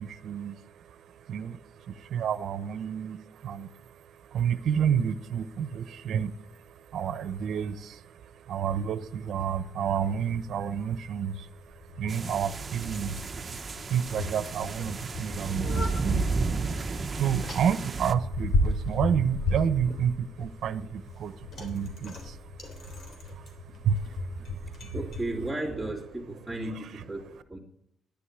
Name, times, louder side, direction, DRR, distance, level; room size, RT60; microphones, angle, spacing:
voice 1, 0.0-25.2 26.4-27.4, right 8 dB, 65° right, 0.9 m, -31 dB
Bicycle, 9.0-25.3, left 2 dB, 55° left, 3.3 m, -35 dB
sound 1, 12.1-18.1, right 3 dB, 35° right, 0.9 m, -32 dB
voice 2, 24.9-27.6, right 2 dB, 5° left, 3.0 m, -34 dB
10.5 x 10.0 x 9.7 m
cardioid pair, 90°, 0 cm